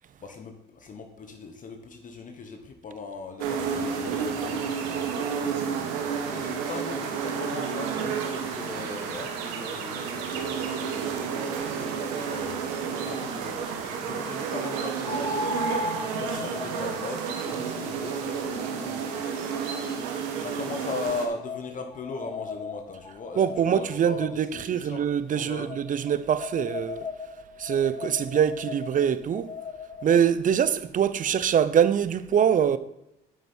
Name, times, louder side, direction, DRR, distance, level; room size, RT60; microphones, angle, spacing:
voice 1, 0.2-5.9 6.3-20.0 20.3-25.0 25.3-25.7, left 4 dB, 40° left, 1.1 m, -39 dB
sound 1, 3.4-21.3, right 6 dB, 85° right, 1.2 m, -31 dB
sound 2, 15.0-20.2 20.9-24.6 25.7-30.3, left 3 dB, 25° left, 0.8 m, -37 dB
voice 2, 23.4-27.0 27.6-29.5 30.0-32.8, right 8 dB, 45° right, 0.6 m, -24 dB
8.8 x 6.5 x 4.4 m
supercardioid pair, 70°, 20 cm